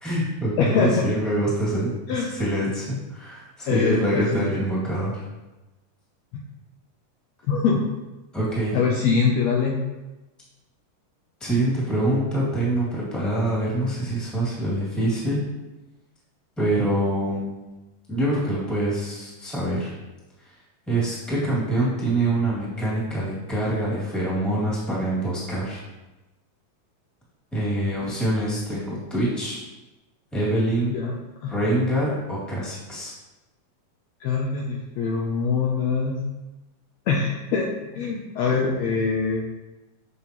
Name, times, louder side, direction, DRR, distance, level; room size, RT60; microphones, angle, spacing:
voice 1, 0.0-5.2 8.3-8.8 11.4-15.4 16.6-17.6 18.1-19.9 20.9-25.8 27.5-29.6 30.3-30.9 31.5-33.1, right 1 dB, ahead, -7 dB, 1.4 m, -25 dB
voice 2, 0.6-1.1 2.1-2.3 3.7-4.5 7.5-7.8 8.7-9.8 30.9-31.1 31.4-31.5 34.2-36.2 37.1-39.4, left 5 dB, 90° left, -1 dB, 1.5 m, -23 dB
7.6 x 5.6 x 3.0 m, 1.1 s
omnidirectional pair, 3.8 m